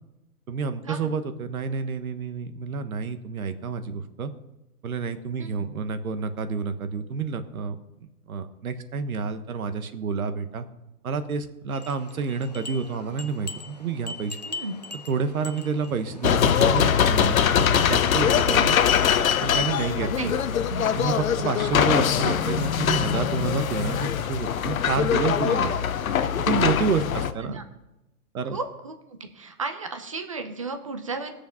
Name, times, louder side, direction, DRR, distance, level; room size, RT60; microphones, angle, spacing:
voice 1, 0.5-4.3 4.8-7.8 8.3-10.7 11.0-14.4 15.1-18.8 19.4-20.3 20.9-25.8 26.4-27.6 28.3-28.6, right 5 dB, 70° right, 10 dB, 1.4 m, -29 dB
sound 1, 11.7-16.8, left 2 dB, 30° left, 0.4 m, -41 dB
sound 2, 16.2-27.3, left 8 dB, 65° left, 0.9 m, -22 dB
voice 2, 27.1-27.6 28.5-28.9 29.3-31.4, right 3 dB, 25° right, 7 dB, 0.6 m, -34 dB
18.5 x 7.0 x 5.6 m, 0.97 s
hypercardioid pair, 180°, 45 cm